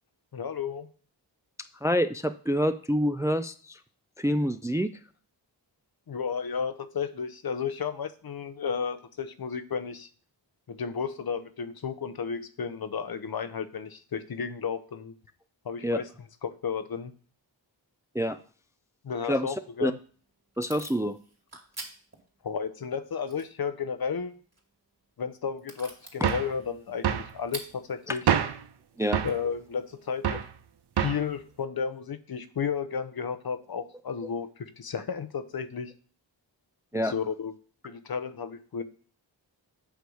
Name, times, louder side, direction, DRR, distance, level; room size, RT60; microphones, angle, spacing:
voice 1, 0.3-0.9 6.1-10.1 10.7-15.1 15.6-16.1 16.4-17.1 19.0-20.0 22.4-24.3 25.2-28.2 29.2-30.4 31.0-35.9 36.9-37.5 37.8-38.8, left 6 dB, 55° left, 10 dB, 0.7 m, -33 dB
voice 2, 1.8-3.8 4.2-4.9 15.8-16.0 18.1-18.4 19.3-19.5 19.8-19.9 20.6-21.2 28.1-28.2 29.0-29.2 36.9-37.1, equal, 5° right, 10 dB, 0.4 m, -27 dB
Packing tape duct tape / Tearing, 19.7-30.5, right 2 dB, 35° right, 2.3 m, -50 dB
sound 1, 26.2-26.5 27.0-27.3 28.3-28.6 29.1-29.4 30.2-30.5 31.0-31.3, right 9 dB, 60° right, 0.6 m, -26 dB
8.0 x 3.4 x 6.3 m, 0.43 s
cardioid pair, 45°, 45 cm